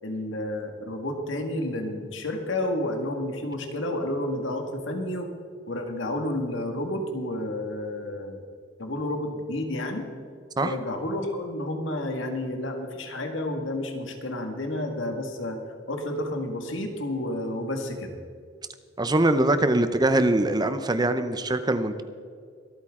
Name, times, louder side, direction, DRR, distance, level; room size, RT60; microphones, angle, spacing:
voice 1, 0.0-5.3 5.7-8.4 8.8-10.1 10.6-15.6 15.9-18.1, left 1 dB, 80° left, 4 dB, 1.9 m, -30 dB
voice 2, 19.0-22.0, right 2 dB, 20° right, 10 dB, 0.6 m, -23 dB
24.0 x 9.0 x 3.7 m, 2.2 s
head